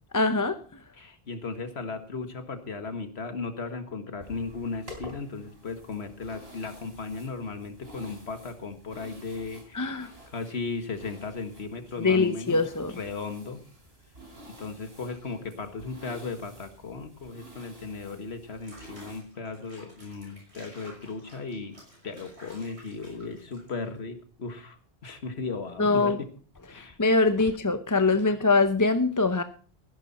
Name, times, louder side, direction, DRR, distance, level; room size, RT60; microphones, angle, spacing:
voice 1, 0.1-0.6 9.7-10.1 12.0-12.9 25.8-26.2 26.7-29.4, left 3 dB, 20° left, 0.6 m, -23 dB
voice 2, 0.9-12.6 13.0-13.6 14.6-21.8 22.0-26.3 26.7-27.0, left 4 dB, 80° left, 1.8 m, -36 dB
sound 1, 4.2-19.2, equal, 70° right, 4.0 m, -50 dB
Water / Bathtub (filling or washing), 18.5-24.0, right 1 dB, 90° right, 6.7 m, -53 dB
15.5 x 11.5 x 4.2 m
omnidirectional pair, 1.1 m